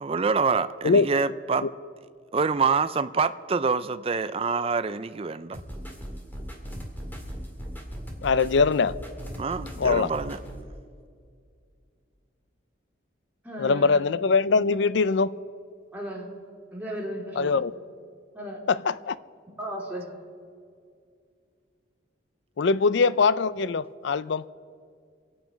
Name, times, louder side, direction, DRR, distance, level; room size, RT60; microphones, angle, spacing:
voice 1, 0.0-1.7 2.3-5.6 9.4-10.4, right 5 dB, 30° right, 0.4 m, -26 dB
sound 1, 5.5-10.6, equal, 10° left, 2.1 m, -38 dB
voice 2, 8.2-8.9 9.8-10.1 13.6-15.3 17.4-17.7 18.7-18.8 19.1-19.2 22.6-24.4, left 4 dB, 65° left, 0.5 m, -22 dB
voice 3, 13.4-14.0 15.9-16.3 16.7-17.6 18.3-18.6 19.5-20.1, equal, 10° right, 3.1 m, -35 dB
25.5 x 8.9 x 5.2 m
head